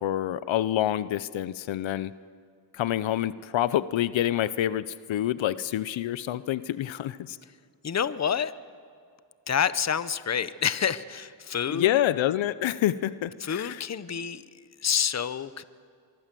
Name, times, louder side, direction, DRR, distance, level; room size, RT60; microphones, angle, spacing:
voice 1, 0.0-2.1 2.7-7.4 11.7-13.8, left 12 dB, 80° left, 16 dB, 0.8 m, -27 dB
voice 2, 7.8-8.5 9.5-12.0 13.4-14.5 14.8-15.6, left 7 dB, 35° left, 15 dB, 0.9 m, -28 dB
24.0 x 23.5 x 7.6 m, 2.2 s
cardioid pair, 85°, 45 cm